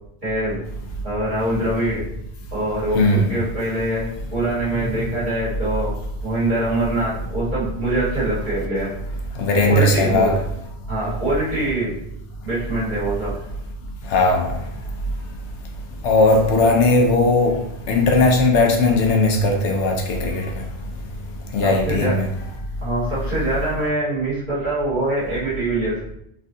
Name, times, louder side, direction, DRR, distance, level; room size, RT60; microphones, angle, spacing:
voice 1, 0.2-0.6 1.0-2.0 2.5-5.9 6.2-8.9 9.7-10.3 10.9-11.9 12.4-13.3 21.6-22.2 22.8-26.0, right 1 dB, 45° right, 1.5 m, -24 dB
voice 2, 2.9-3.3 9.4-10.4 14.1-14.5 16.0-17.6 17.9-20.5 21.5-22.3, left 2 dB, 80° left, 0.9 m, -17 dB
3.4 x 2.4 x 2.6 m
omnidirectional pair, 1.2 m